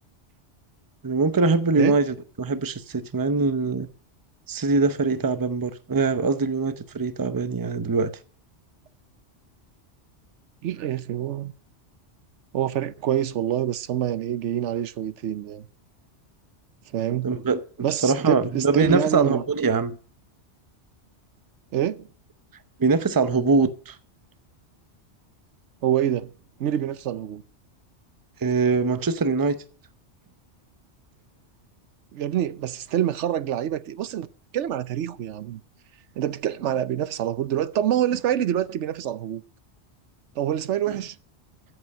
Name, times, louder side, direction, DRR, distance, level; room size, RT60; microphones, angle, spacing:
voice 1, 1.0-3.9 4.5-8.1 17.2-17.6 18.0-20.0 22.8-24.0 28.4-29.6 40.9-41.0, right 4 dB, 20° right, 0.6 m, -23 dB
voice 2, 10.6-11.5 12.5-15.7 16.9-17.3 17.8-19.4 21.7-22.1 25.8-26.3 26.6-27.4 32.1-34.3 34.5-35.6 36.2-39.4 40.4-41.2, right 10 dB, 80° right, 1.0 m, -26 dB
13.5 x 7.9 x 5.4 m
omnidirectional pair, 1.2 m